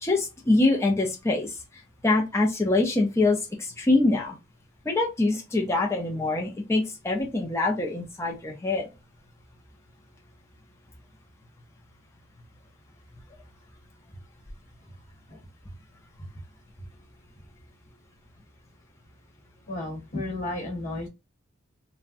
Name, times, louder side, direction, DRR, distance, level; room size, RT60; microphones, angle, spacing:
voice 1, 0.0-1.5 2.0-4.4 4.9-8.8, left 2 dB, 15° left, -1 dB, 0.5 m, -24 dB
voice 2, 19.7-21.1, left 2 dB, 40° left, 0 dB, 1.0 m, -33 dB
3.5 x 2.1 x 2.5 m, 0.25 s
head